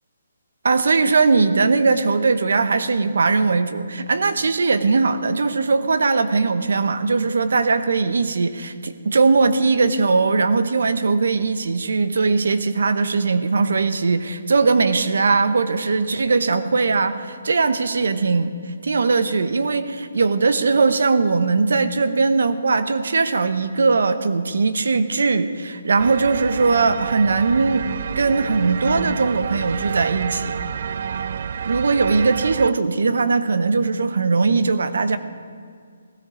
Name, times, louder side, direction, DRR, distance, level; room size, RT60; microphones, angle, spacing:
voice 1, 0.6-18.5 18.8-30.5 31.6-35.2, right 4 dB, 75° right, 11 dB, 0.9 m, -20 dB
sound 1, 26.0-32.7, right 7 dB, 55° right, 0.4 m, -29 dB
16.5 x 13.5 x 5.1 m, 2.1 s
hypercardioid pair, 155°, 0 cm